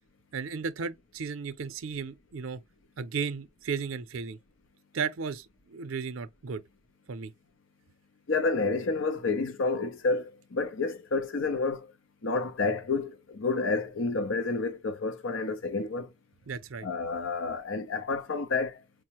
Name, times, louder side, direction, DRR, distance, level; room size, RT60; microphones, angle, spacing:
voice 1, 0.3-2.6 3.0-4.4 4.9-6.6 7.1-7.3 16.5-16.9, right 5 dB, 85° right, 0.5 m, -34 dB
voice 2, 8.3-11.9 12.2-16.1 16.8-18.8, left 3 dB, 75° left, 0.6 m, -29 dB
4.7 x 2.0 x 2.9 m
head